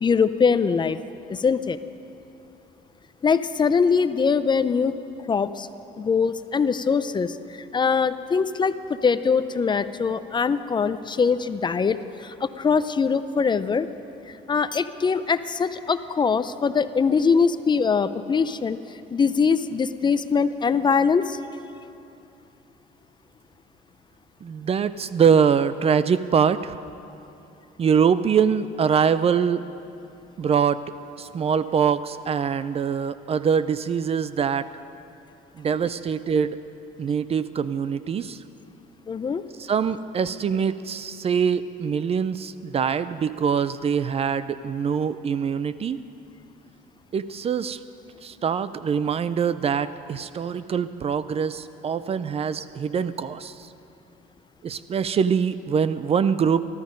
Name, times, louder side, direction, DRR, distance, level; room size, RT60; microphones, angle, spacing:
voice 1, 0.0-1.0 1.3-1.8 3.2-4.9 5.3-5.7 6.0-8.7 9.0-13.9 14.3-18.8 19.1-21.4 39.1-39.4, left 5 dB, 25° left, 12 dB, 0.5 m, -22 dB
voice 2, 24.4-26.8 27.8-29.6 30.4-30.8 31.2-34.7 35.6-36.6 37.0-38.4 39.6-46.0 47.1-47.8 48.2-53.7 54.6-56.6, right 7 dB, 35° right, 14 dB, 0.5 m, -23 dB
19.0 x 13.5 x 5.2 m, 2.8 s
cardioid pair, 110°, 17 cm